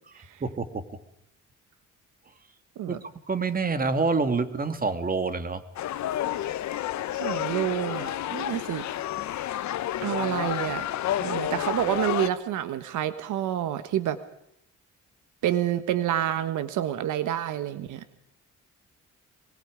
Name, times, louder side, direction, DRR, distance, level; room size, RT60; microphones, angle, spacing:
voice 1, 0.4-1.0 2.9-5.6, right 4 dB, 30° right, 9 dB, 2.2 m, -27 dB
sound 1, 5.8-12.3, left 12 dB, 70° left, 1.0 m, -30 dB
voice 2, 7.1-8.8 10.0-10.9 11.2-14.2 15.4-18.2, right 11 dB, 85° right, 12 dB, 1.3 m, -28 dB
24.0 x 23.5 x 5.1 m, 0.76 s
cardioid pair, 90°, 30 cm